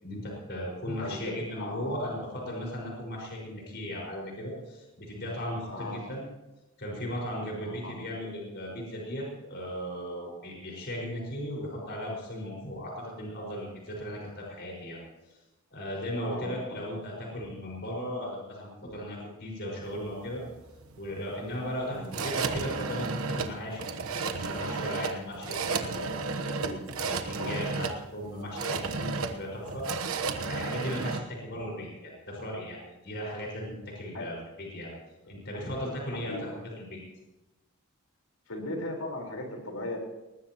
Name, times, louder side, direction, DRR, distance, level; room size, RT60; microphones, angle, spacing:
voice 1, 0.0-6.2 6.8-15.0 15.7-20.4 21.0-23.9 24.3-26.3 27.0-29.8 30.5-34.9 35.3-36.5 36.8-37.0, equal, 50° left, -2 dB, 5.3 m, -37 dB
voice 2, 1.0-1.9 5.7-6.0 7.6-7.9 16.2-16.8 21.8-22.1 26.4-26.8 27.4-27.6 34.1-34.3 35.5-35.7 36.1-36.5 38.5-40.0, left 1 dB, 80° left, 2 dB, 4.4 m, -38 dB
sound 1, 19.8-31.2, right 4 dB, 75° right, 1.1 m, -33 dB
20.0 x 19.5 x 3.0 m, 1.1 s
head